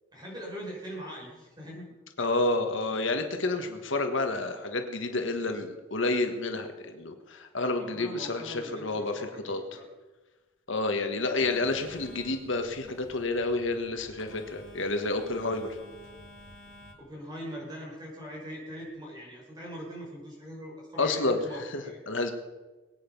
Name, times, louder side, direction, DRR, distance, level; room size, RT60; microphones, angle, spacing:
voice 1, 0.1-1.9 7.8-9.9 17.0-22.0, equal, 20° right, -3 dB, 5.7 m, -42 dB
voice 2, 2.2-9.6 10.7-15.7 21.0-21.8 22.1-22.3, left 2 dB, 70° left, 6 dB, 1.5 m, -29 dB
Telephone, 11.4-16.9, left 1 dB, 85° left, 3.9 m, -50 dB
22.5 x 9.2 x 5.4 m, 1.2 s
head